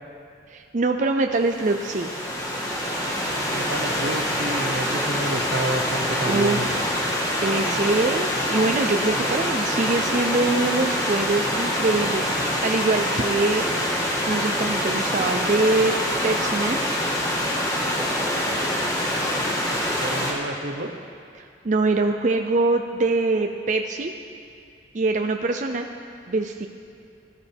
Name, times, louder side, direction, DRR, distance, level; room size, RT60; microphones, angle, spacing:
voice 1, 0.5-2.1 6.3-7.1 7.4-13.6 14.3-15.9 16.2-16.8 21.4-24.1 24.9-25.9 26.3-26.7, right 3 dB, 45° right, 4 dB, 0.5 m, -24 dB
Stream / Liquid, 1.4-20.3, equal, 20° left, 1.6 m, -25 dB
voice 2, 3.5-6.7 19.9-20.9, right 2 dB, 80° right, 5 dB, 1.0 m, -30 dB
18.0 x 12.5 x 3.5 m, 2.4 s
head